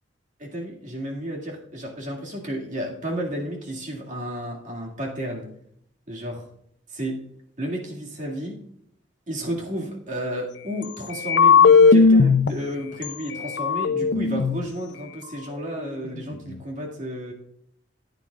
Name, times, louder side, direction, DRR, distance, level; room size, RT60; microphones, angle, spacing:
voice 1, 0.4-5.5 6.1-6.5 6.9-7.2 7.6-8.6 9.3-17.3, equal, 45° right, -1 dB, 2.1 m, -32 dB
sound 1, 11.2-12.5 13.0-13.1 13.4-14.7, left 5 dB, 65° left, 0.5 m, -16 dB
15.0 x 9.2 x 2.4 m, 0.70 s
head